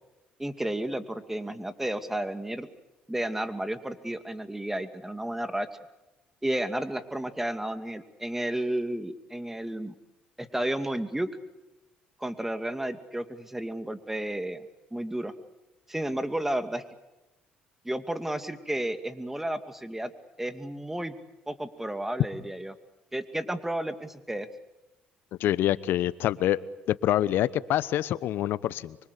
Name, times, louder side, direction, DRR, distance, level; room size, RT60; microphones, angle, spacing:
voice 1, 0.4-2.7 3.1-5.7 6.4-9.9 10.4-11.3 12.2-14.7 14.9-15.3 15.9-16.8 17.8-20.1 20.4-21.2 21.5-22.8 23.1-24.5, right 1 dB, 10° right, 9 dB, 2.5 m, -32 dB
voice 2, 25.4-26.6 26.9-29.0, left 13 dB, 70° left, 17 dB, 1.0 m, -26 dB
25.5 x 24.0 x 8.4 m, 0.97 s
supercardioid pair, 75°, 4 cm